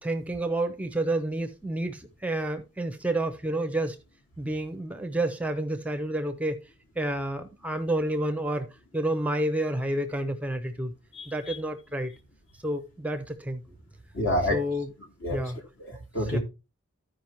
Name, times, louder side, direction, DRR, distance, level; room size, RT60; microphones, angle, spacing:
voice 1, 0.0-4.0 4.4-6.6 7.0-8.7 8.9-10.9 11.3-12.1 12.6-13.6 14.5-14.9 15.3-15.6 16.2-16.4, right 1 dB, 5° right, 0.5 m, -29 dB
voice 2, 11.1-11.6 14.1-14.6 15.2-15.4 15.8-16.4, left 1 dB, 65° left, 3.0 m, -28 dB
14.0 x 5.1 x 2.9 m
head